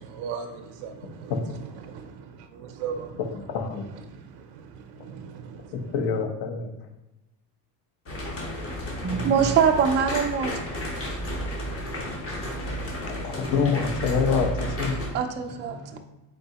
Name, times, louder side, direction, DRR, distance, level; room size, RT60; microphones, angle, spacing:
voice 1, 0.0-3.2 3.8-5.9, right 6 dB, 70° right, 5 dB, 0.6 m, -39 dB
voice 2, 3.3-3.9 5.9-6.7 12.8-15.1, left 5 dB, 55° left, 5 dB, 0.8 m, -26 dB
sound 1, 8.1-15.1, equal, 30° left, 1.0 m, -32 dB
voice 3, 9.0-10.6 15.1-16.0, right 7 dB, 25° right, 4 dB, 0.3 m, -23 dB
3.8 x 3.8 x 2.8 m, 1.0 s
cardioid pair, 120°, 47 cm